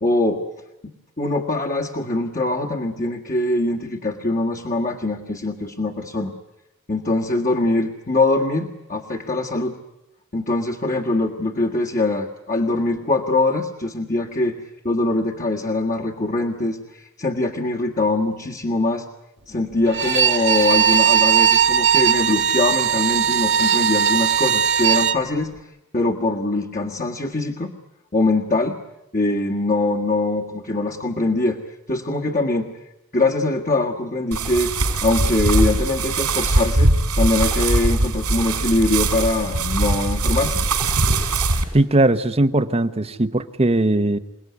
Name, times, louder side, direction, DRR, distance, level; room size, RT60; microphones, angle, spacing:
voice 1, 0.0-0.4 1.2-6.3 6.9-9.8 10.3-19.0 19.5-25.5 25.9-27.7 28.1-28.8 29.1-31.6 31.9-32.7 33.1-40.6, left 2 dB, 35° left, 0 dB, 1.7 m, -22 dB
Bowed string instrument, 19.9-25.2, right 8 dB, 55° right, 1.4 m, -18 dB
sound 1, 34.3-41.6, right 2 dB, 90° right, 5.2 m, -21 dB
voice 2, 41.7-44.2, right 2 dB, 25° right, 10 dB, 0.9 m, -19 dB
28.0 x 18.5 x 9.6 m, 0.91 s
head